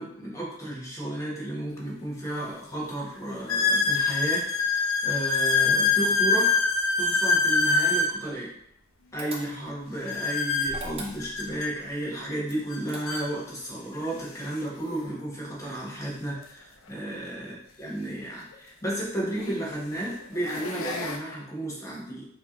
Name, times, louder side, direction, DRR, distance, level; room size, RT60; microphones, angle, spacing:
voice 1, 0.0-6.6 7.0-8.5 9.1-22.3, right 1 dB, 15° left, -5 dB, 1.3 m, -33 dB
sound 1, 1.8-1.9 2.5-2.6 3.5-8.1 10.1-11.7 12.7-12.8 13.1-13.2 14.0-14.1 16.3-16.4 18.5-18.6 19.4-19.7 20.2-21.2, left 4 dB, 85° left, 0.6 m, -25 dB
sound 2, 9.2-9.9 10.7-11.6 12.5-13.4, right 2 dB, 30° right, 0.7 m, -41 dB
4.4 x 3.0 x 3.7 m, 0.72 s
head